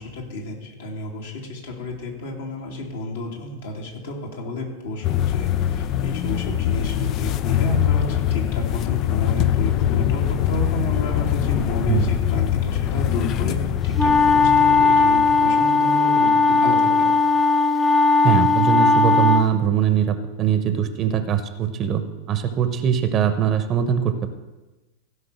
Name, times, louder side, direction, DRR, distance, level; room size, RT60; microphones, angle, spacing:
voice 1, 0.0-13.6 13.8-17.1, left 1 dB, 60° left, -1 dB, 2.7 m, -31 dB
sound 1, 5.0-15.6, left 11 dB, 35° left, 0.4 m, -23 dB
sound 2, 14.0-19.5, left 4 dB, 10° left, 0.7 m, -17 dB
voice 2, 18.2-24.3, right 9 dB, 30° right, 10 dB, 0.9 m, -21 dB
15.5 x 5.5 x 6.3 m, 1.1 s
figure-of-eight pair, 90°, 0 cm